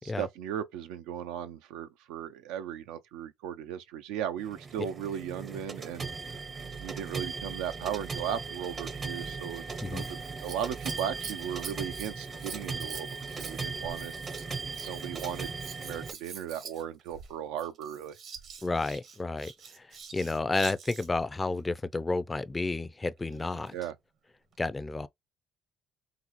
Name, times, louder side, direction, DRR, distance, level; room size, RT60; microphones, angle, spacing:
voice 1, 0.2-6.1 6.8-14.2 14.9-15.5 15.8-18.2 23.7-23.9, right 9 dB, 90° right, 0.4 m, -37 dB
sound 1, 4.4-16.1, right 4 dB, 40° right, 0.6 m, -38 dB
Scissors, 9.9-21.3 23.2-23.8 24.5-24.6, right 6 dB, 65° right, 1.0 m, -46 dB
voice 2, 18.6-19.5 20.1-23.7 24.6-25.1, left 3 dB, 20° left, 0.4 m, -31 dB
3.8 x 2.0 x 3.0 m
supercardioid pair, 80°, 0 cm